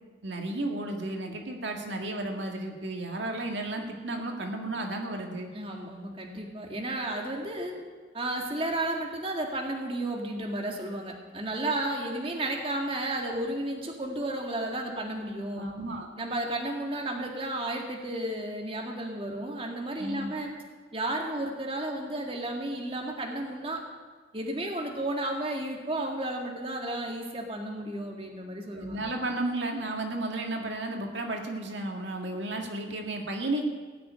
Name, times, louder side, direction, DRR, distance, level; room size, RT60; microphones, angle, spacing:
voice 1, 0.2-5.5 15.6-16.1 20.0-20.4 28.7-33.6, right 2 dB, 75° right, 2 dB, 2.0 m, -33 dB
voice 2, 5.5-7.8 8.1-15.7 16.2-20.6 20.9-23.8 24.3-29.0, right 1 dB, 30° right, 1 dB, 1.8 m, -33 dB
17.5 x 6.9 x 9.4 m, 1.5 s
head